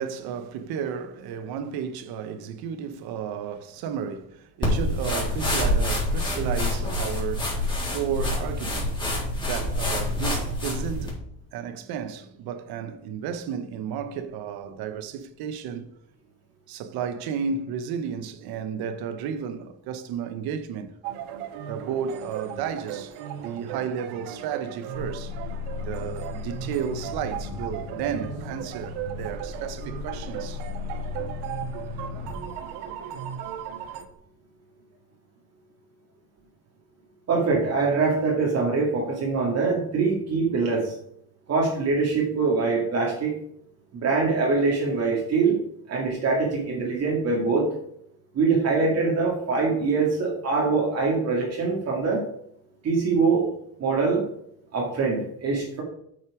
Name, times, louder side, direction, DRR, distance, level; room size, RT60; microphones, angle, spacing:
voice 1, 0.0-8.9 9.4-11.2 11.5-15.9 16.7-20.9 21.7-25.3 25.8-30.6 31.7-31.8, right 7 dB, 70° right, 1.1 m, -33 dB
sound 1, 4.6-11.1, left 1 dB, 10° left, 3.7 m, -26 dB
sound 2, 21.0-34.0, right 9 dB, 90° right, 1.1 m, -37 dB
sound 3, 24.9-34.1, left 4 dB, 65° left, 3.2 m, -37 dB
voice 2, 37.3-40.9 41.5-43.3 43.9-45.6 45.9-47.7 48.3-52.3 52.8-53.5 53.8-54.3 54.7-55.8, right 4 dB, 40° right, 2.3 m, -23 dB
8.5 x 6.4 x 5.0 m
cardioid pair, 135°, 38 cm